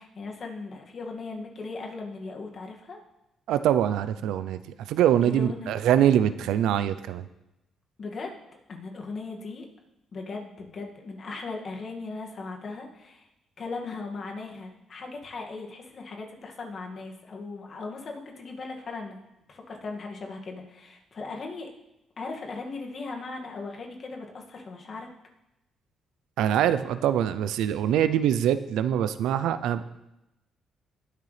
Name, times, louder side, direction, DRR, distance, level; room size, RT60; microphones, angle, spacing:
voice 1, 0.0-3.0 5.2-5.8 8.0-8.3 8.7-9.7 10.1-13.3 13.6-19.2 19.5-21.7 22.2-25.1, left 3 dB, 50° left, 1 dB, 2.0 m, -38 dB
voice 2, 3.5-4.6 4.9-7.3 26.4-29.8, right 10 dB, 85° right, 13 dB, 0.5 m, -23 dB
19.5 x 6.7 x 3.3 m, 0.92 s
cardioid pair, 90°, 0 cm